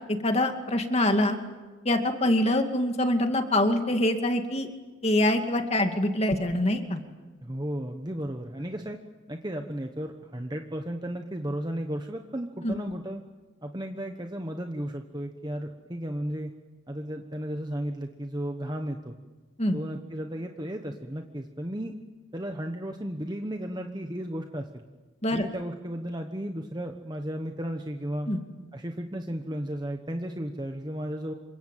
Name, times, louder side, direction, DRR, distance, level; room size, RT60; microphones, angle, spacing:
voice 1, 0.1-1.4 1.8-4.7 5.0-7.0 12.6-12.7 19.6-19.8 25.2-25.5 28.3-28.4, left 1 dB, 30° left, 5 dB, 2.4 m, -24 dB
voice 2, 7.4-9.0 9.3-13.2 13.6-16.5 16.9-19.1 19.7-21.9 22.3-24.8 25.3-28.3 28.7-31.3, right 1 dB, 20° right, 5 dB, 1.1 m, -34 dB
28.0 x 24.5 x 7.6 m, 1.3 s
head